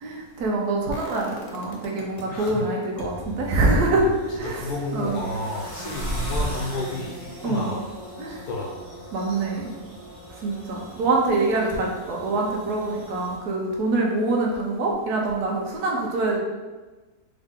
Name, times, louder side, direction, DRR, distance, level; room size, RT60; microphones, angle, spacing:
voice 1, 0.0-4.1 4.3-4.7 4.9-5.2 7.4-7.7 8.2-8.5 9.1-9.7 10.4-16.4, right 2 dB, 90° right, -1 dB, 1.3 m, -25 dB
sound 1, 0.9-2.5 3.0-8.8 9.1-9.2, left 2 dB, 65° left, 0.4 m, -43 dB
voice 2, 2.3-2.7 3.9-4.1 4.4-7.8 8.3-8.8 10.3-10.4, left 2 dB, 80° left, -2 dB, 1.1 m, -31 dB
sound 2, 3.1-13.4, equal, 35° right, 1.7 m, -37 dB
3.9 x 3.2 x 3.6 m, 1.2 s
omnidirectional pair, 1.6 m